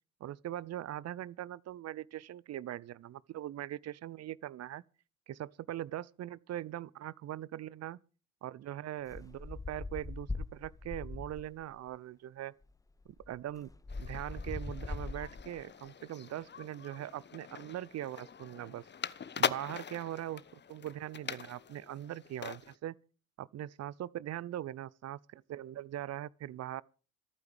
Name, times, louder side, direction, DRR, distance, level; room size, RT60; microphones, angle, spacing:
voice 1, 0.2-4.8 5.3-8.0 8.4-12.5 13.3-13.7 14.0-18.8 19.4-20.4 20.7-22.9 23.4-26.8, right 13 dB, 40° right, 0.7 m, -41 dB
sound 1, 9.1-11.6 12.6-12.7 13.0-15.6, left 3 dB, 10° left, 0.7 m, -41 dB
sound 2, 13.9-22.8, left 7 dB, 25° left, 1.0 m, -41 dB
27.0 x 9.4 x 3.4 m
figure-of-eight pair, 50°, 40 cm